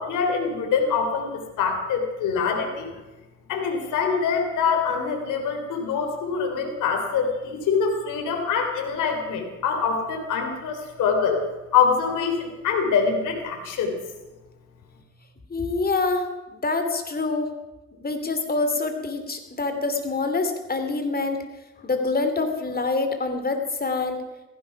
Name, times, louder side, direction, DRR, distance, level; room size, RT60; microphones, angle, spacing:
voice 1, 0.0-2.9 3.5-14.0, left 6 dB, 85° left, 4 dB, 3.4 m, -24 dB
voice 2, 15.5-16.3 16.5-17.5 18.0-21.4 21.8-24.2, left 3 dB, 30° left, 7 dB, 2.8 m, -26 dB
16.0 x 15.5 x 5.9 m, 1.1 s
cardioid pair, 90°, 30 cm